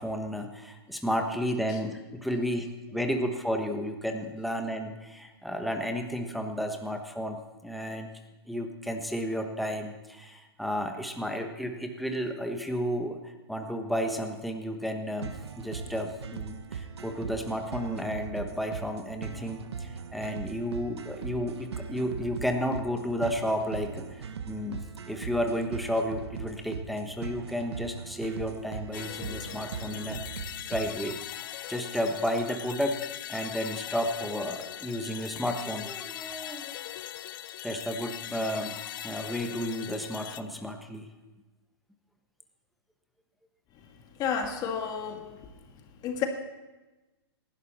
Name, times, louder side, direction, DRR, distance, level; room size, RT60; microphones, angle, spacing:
voice 1, 0.0-8.1 8.5-15.3 15.6-24.0 24.5-31.2 31.7-36.8 37.6-41.1, equal, ahead, 4 dB, 1.2 m, -32 dB
sound 1, 15.2-31.2, right 6 dB, 80° right, 1.0 m, -40 dB
sound 2, 28.9-40.4, left 13 dB, 50° left, 0.6 m, -40 dB
voice 2, 43.8-45.5 46.0-46.3, left 7 dB, 30° left, 4 dB, 1.7 m, -32 dB
18.5 x 11.5 x 4.3 m, 1.1 s
hypercardioid pair, 135°, 14 cm